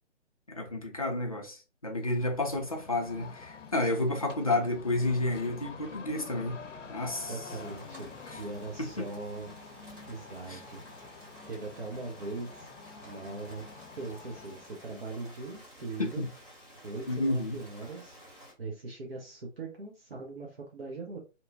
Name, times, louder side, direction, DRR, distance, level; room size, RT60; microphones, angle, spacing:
voice 1, 0.5-6.6 6.9-7.4 8.3-8.4 8.8-9.1 10.5-10.6 16.0-16.3 17.1-17.6, left 2 dB, 30° left, 0.4 m, -31 dB
sound 1, 2.0-14.8, left 5 dB, 85° left, 0.6 m, -48 dB
voice 2, 7.3-9.5 10.1-12.7 13.0-13.6 14.0-16.3 16.8-18.2 18.6-21.2, right 3 dB, 55° right, 0.7 m, -40 dB
Rain, 7.4-18.5, equal, 15° right, 0.7 m, -52 dB
2.8 x 2.2 x 2.6 m
figure-of-eight pair, 140°, 36 cm